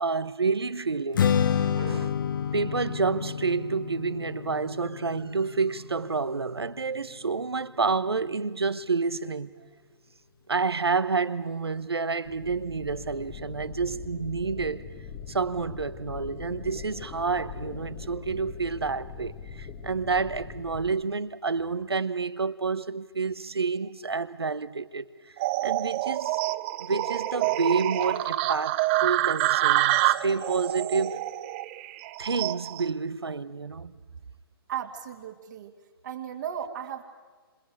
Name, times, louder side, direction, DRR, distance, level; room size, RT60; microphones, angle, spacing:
voice 1, 0.0-1.4 1.8-2.2 2.5-9.5 10.5-14.9 15.3-25.3 25.6-26.4 26.8-31.2 32.2-33.9, right 4 dB, 80° right, 1.0 m, -29 dB
Strum, 1.1-7.4, left 8 dB, 55° left, 1.0 m, -30 dB
sound 1, 12.3-20.9, left 6 dB, 25° left, 1.3 m, -41 dB
sound 2, 25.4-32.9, right 16 dB, 30° right, 0.6 m, -27 dB
voice 2, 34.7-35.7 36.0-37.0, right 9 dB, 50° right, 2.3 m, -35 dB
28.5 x 27.0 x 4.8 m
figure-of-eight pair, 130°, 13 cm